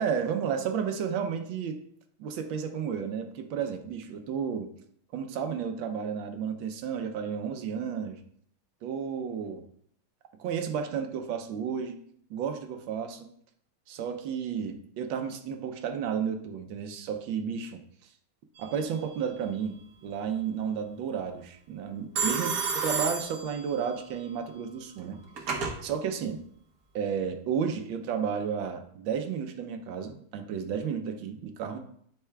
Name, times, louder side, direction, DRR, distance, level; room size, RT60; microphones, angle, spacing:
voice 1, 0.0-1.8 2.2-4.7 5.1-8.2 8.8-9.6 10.4-12.0 12.3-13.3 13.9-17.8 18.6-25.2 25.8-26.4 26.9-31.8, right 7 dB, 75° right, 6 dB, 1.3 m, -32 dB
Telephone, 18.6-19.1 22.2-24.0 25.0-25.8, right 5 dB, 55° right, 1.1 m, -31 dB
9.7 x 4.6 x 2.3 m, 0.64 s
omnidirectional pair, 2.3 m